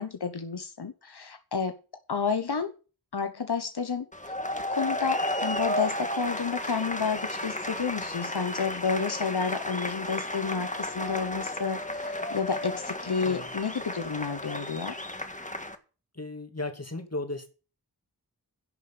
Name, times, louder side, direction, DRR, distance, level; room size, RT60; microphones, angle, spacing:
voice 1, 0.0-1.7 2.1-2.7 3.1-4.3 4.7-14.9, left 5 dB, 80° left, 1.1 m, -30 dB
sound 1, 4.1-15.8, left 1 dB, 20° left, 1.8 m, -33 dB
voice 2, 16.1-17.5, left 2 dB, 40° left, 2.8 m, -35 dB
11.0 x 6.8 x 8.8 m
wide cardioid pair, 45°, 39 cm